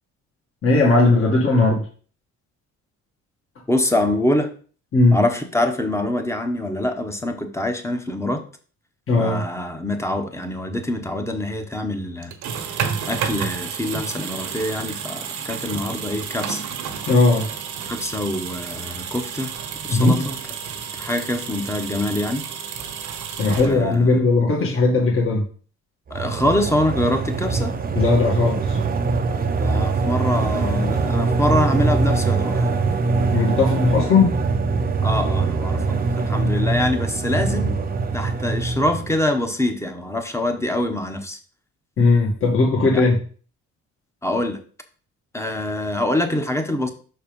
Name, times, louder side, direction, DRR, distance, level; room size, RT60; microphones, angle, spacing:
voice 1, 0.6-1.8 4.9-5.2 9.1-9.4 17.0-17.5 19.9-20.3 23.4-25.4 28.0-28.8 33.3-34.4 42.0-43.2, left 3 dB, 45° left, -2 dB, 2.1 m, -18 dB
voice 2, 3.7-4.5 5.1-8.4 9.2-12.3 13.1-16.6 17.9-19.5 19.8-20.4 20.9-22.4 23.5-24.2 26.1-27.7 29.6-32.8 35.0-37.7 38.1-41.4 42.9-43.0 44.2-44.6 45.3-46.9, left 1 dB, 10° left, 6 dB, 1.0 m, -24 dB
sound 1, 12.2-24.1, right 7 dB, 80° right, 1.2 m, -31 dB
sound 2, 26.1-39.2, right 4 dB, 30° right, 0.7 m, -22 dB
6.1 x 4.4 x 5.3 m, 0.41 s
cardioid pair, 125°, 29 cm